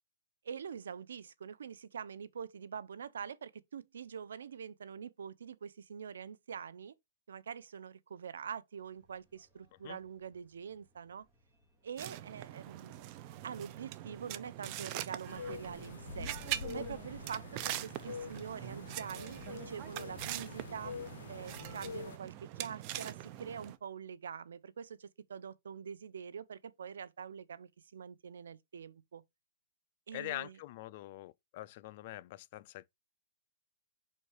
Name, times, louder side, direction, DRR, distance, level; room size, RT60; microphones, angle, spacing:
voice 1, 0.4-6.9 7.3-11.2 11.8-16.3 16.7-20.9 21.3-29.2 30.1-30.5, right 7 dB, 85° right, 0.7 m, -45 dB
sound 1, 8.8-17.4, right 1 dB, 20° right, 3.3 m, -72 dB
Pelle-creusant terre(st), 12.0-23.8, right 13 dB, 35° right, 0.6 m, -43 dB
sound 2, 15.3-22.2, left 6 dB, 75° left, 0.7 m, -46 dB
voice 2, 30.1-32.9, left 16 dB, 40° left, 0.4 m, -44 dB
5.5 x 4.3 x 4.9 m
hypercardioid pair, 155°, 0 cm